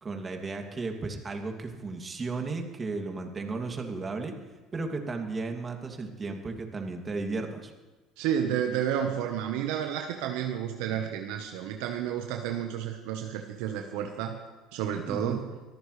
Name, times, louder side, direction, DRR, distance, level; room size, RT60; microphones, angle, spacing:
voice 1, 0.0-4.3 4.7-7.7 10.9-11.0 15.1-15.4, right 3 dB, 30° right, 3 dB, 2.6 m, -34 dB
voice 2, 8.2-14.4 14.7-15.5, right 9 dB, 75° right, 4 dB, 1.1 m, -31 dB
23.0 x 14.0 x 3.3 m, 1.2 s
hypercardioid pair, 75°, 0 cm